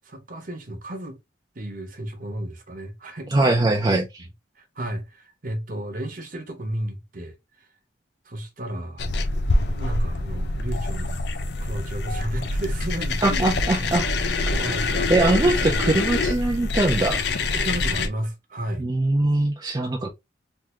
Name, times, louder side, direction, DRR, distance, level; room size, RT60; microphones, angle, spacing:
voice 1, 0.0-1.2 1.5-3.6 4.2-4.3 4.6-7.4 8.3-9.0 9.5-11.2 11.6-14.1 14.5-15.9 17.5-18.9, right 1 dB, 50° right, 0.9 m, -33 dB
voice 2, 3.3-4.3 13.2-14.1 15.1-17.2 18.8-20.1, right 2 dB, 25° right, 0.5 m, -21 dB
sound 1, 9.0-18.1, left 2 dB, 65° left, 0.6 m, -25 dB
3.5 x 2.6 x 3.0 m
head